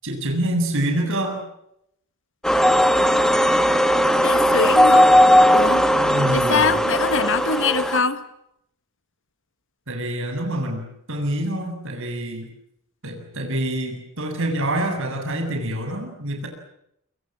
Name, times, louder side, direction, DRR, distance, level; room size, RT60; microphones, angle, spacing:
voice 1, 0.0-1.4 5.9-6.8 9.9-12.5 13.0-16.5, right 1 dB, 60° right, 5 dB, 7.7 m, -26 dB
sound 1, 2.4-8.0, equal, 5° left, 1.9 m, -17 dB
voice 2, 4.2-5.1 5.5-5.8 6.3-8.2, left 4 dB, 60° left, 13 dB, 1.6 m, -23 dB
28.0 x 25.0 x 7.7 m, 0.77 s
head